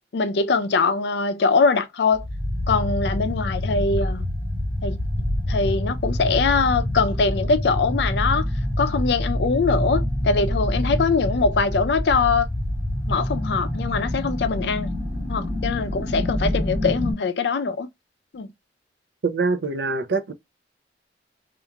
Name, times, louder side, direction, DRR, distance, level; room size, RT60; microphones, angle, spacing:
voice 1, 0.1-2.2 2.7-4.3 4.8-5.0 5.5-8.5 8.8-12.5 13.1-14.9 15.3-17.9 18.3-18.5, left 4 dB, 70° left, 0.4 m, -22 dB
sound 1, 2.1-17.1, left 1 dB, 35° right, 1.5 m, -26 dB
voice 2, 19.2-20.3, right 4 dB, 70° right, 0.5 m, -24 dB
2.8 x 2.5 x 2.2 m
head